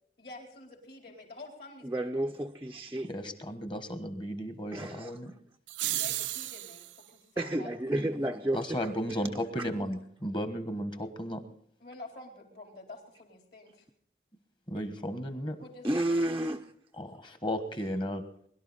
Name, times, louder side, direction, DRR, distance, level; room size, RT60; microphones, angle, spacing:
voice 1, 0.2-2.3 5.9-8.1 8.7-8.8 11.8-13.8 15.6-16.2, left 2 dB, 55° left, 4.1 m, -49 dB
voice 2, 1.8-3.1 4.7-5.1 7.4-8.9 9.6-9.7 15.8-16.7, right 1 dB, 15° right, 0.5 m, -31 dB
voice 3, 3.0-5.3 8.5-11.4 14.7-15.6 17.0-18.2, equal, 25° left, 1.3 m, -34 dB
sound 1, 5.7-7.0, right 15 dB, 85° right, 0.5 m, -33 dB
22.0 x 12.0 x 4.1 m
head